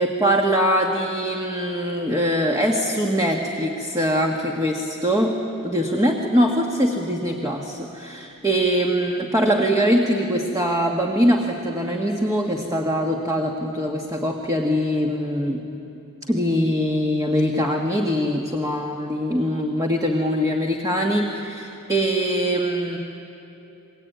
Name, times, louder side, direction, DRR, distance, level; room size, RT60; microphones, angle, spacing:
voice 1, 0.0-5.4 5.6-15.6 16.3-23.0, equal, 15° right, 1 dB, 1.6 m, -22 dB
29.0 x 21.5 x 9.3 m, 2.9 s
head